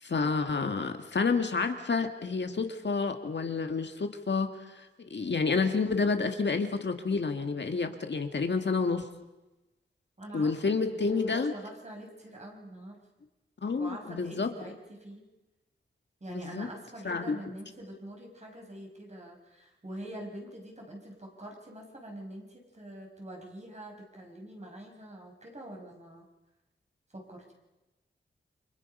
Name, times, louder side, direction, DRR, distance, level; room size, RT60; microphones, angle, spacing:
voice 1, 0.0-9.0 10.3-11.5 13.6-14.7 16.3-16.7 17.0-17.4, left 4 dB, 65° left, 6 dB, 1.9 m, -29 dB
voice 2, 10.2-13.0 13.8-15.3 16.2-26.3 27.1-27.5, right 1 dB, 35° right, 1 dB, 5.4 m, -45 dB
29.5 x 26.0 x 5.5 m, 1.0 s
wide cardioid pair, 95°, 20 cm